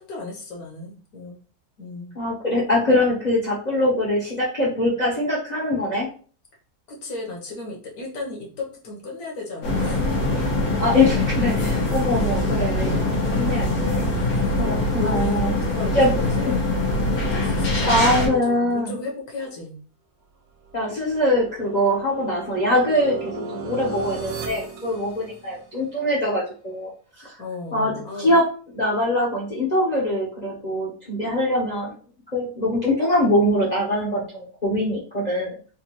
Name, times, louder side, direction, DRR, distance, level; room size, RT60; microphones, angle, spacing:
voice 1, 0.0-1.4 1.8-2.1 6.9-10.4 14.0-16.7 17.2-19.8 27.4-28.4, left 3 dB, 70° left, -2 dB, 1.6 m, -35 dB
voice 2, 2.1-6.1 10.8-14.1 14.6-15.5 15.9-16.1 16.4-16.5 17.9-19.0 20.7-26.9 27.2-27.4 27.7-27.9 28.2-28.4 28.7-31.9 32.3-35.5, left 1 dB, 35° left, -5 dB, 0.7 m, -23 dB
sound 1, 9.6-18.3, left 2 dB, 90° left, 1.7 m, -23 dB
sound 2, 20.6-25.8, right 4 dB, 85° right, 1.2 m, -36 dB
4.2 x 2.3 x 2.9 m, 0.40 s
omnidirectional pair, 1.7 m